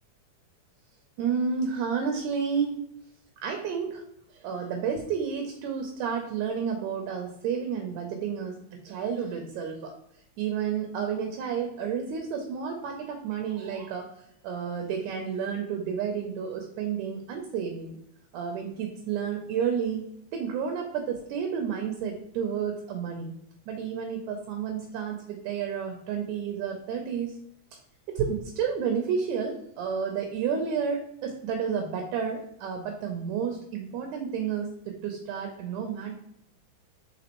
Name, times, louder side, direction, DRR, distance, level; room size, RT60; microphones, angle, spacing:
voice 1, 1.2-2.8 3.4-4.0 4.3-8.6 8.8-9.9 10.4-14.1 14.4-18.0 18.3-20.1 20.3-23.3 23.7-27.4 27.7-27.8 28.1-36.2, right 7 dB, 80° right, 2 dB, 1.9 m, -31 dB
5.0 x 3.6 x 2.9 m, 0.73 s
omnidirectional pair, 3.6 m